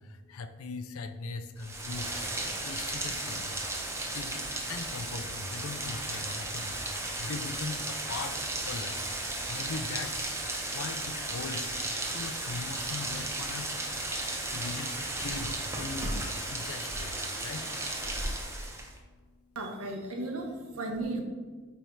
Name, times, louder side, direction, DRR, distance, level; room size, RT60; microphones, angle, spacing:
voice 1, 0.3-2.1 2.6-3.4 4.1-6.7 7.2-8.3 8.7-9.0 9.5-10.2 10.7-11.6 12.1-13.7 14.5-14.9 15.2-15.5 15.8-16.2 16.5-17.1 17.4-17.6, left 4 dB, 75° left, 8 dB, 0.5 m, -39 dB
Rain, 1.6-19.0, right 2 dB, 10° right, 0.7 m, -35 dB
voice 2, 19.5-21.2, right 2 dB, 75° right, 2 dB, 1.2 m, -35 dB
8.5 x 3.4 x 4.6 m, 1.5 s
head